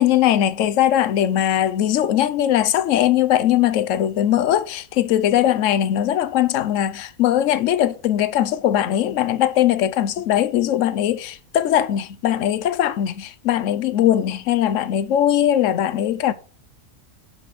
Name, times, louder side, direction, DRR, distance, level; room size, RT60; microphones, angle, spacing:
voice 1, 0.0-16.3, left 11 dB, 65° left, 1.0 m, -20 dB
6.9 x 6.3 x 5.2 m
omnidirectional pair, 1.5 m